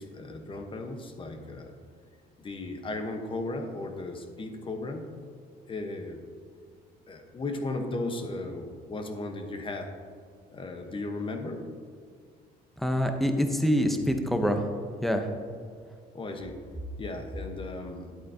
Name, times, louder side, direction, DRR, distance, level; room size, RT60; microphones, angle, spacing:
voice 1, 0.0-1.7 2.4-5.1 5.7-6.2 7.1-9.9 10.5-11.7 16.1-16.6 17.0-18.1, left 2 dB, 30° left, 5 dB, 1.0 m, -36 dB
voice 2, 12.8-14.6 15.0-15.3, equal, ahead, 5 dB, 0.8 m, -25 dB
10.5 x 8.3 x 2.8 m, 2.1 s
cardioid pair, 110°, 17 cm